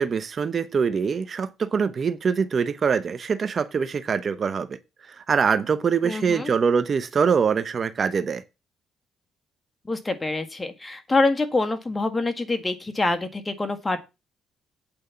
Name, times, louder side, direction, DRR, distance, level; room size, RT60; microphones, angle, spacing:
voice 1, 0.0-4.8 5.2-8.4, right 6 dB, 45° right, 0.9 m, -24 dB
voice 2, 6.0-6.5 9.9-14.0, left 2 dB, 20° left, 1.8 m, -25 dB
8.8 x 5.2 x 7.1 m
cardioid pair, 80°, 0 cm